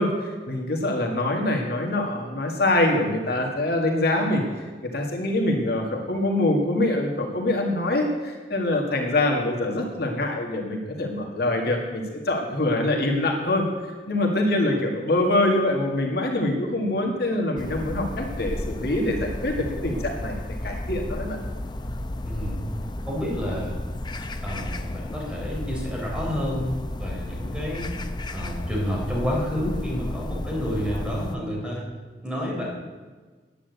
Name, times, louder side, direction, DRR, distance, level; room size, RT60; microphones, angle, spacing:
voice 1, 0.0-4.4 4.8-13.6 14.1-21.4, left 1 dB, 65° left, 1 dB, 1.8 m, -24 dB
sound 1, 17.6-31.4, left 1 dB, 25° left, 0.6 m, -33 dB
voice 2, 22.2-22.6 23.1-23.8 24.4-27.9 28.3-31.8 32.2-32.7, equal, 5° right, -4 dB, 3.7 m, -29 dB
10.0 x 8.7 x 8.1 m, 1.4 s
head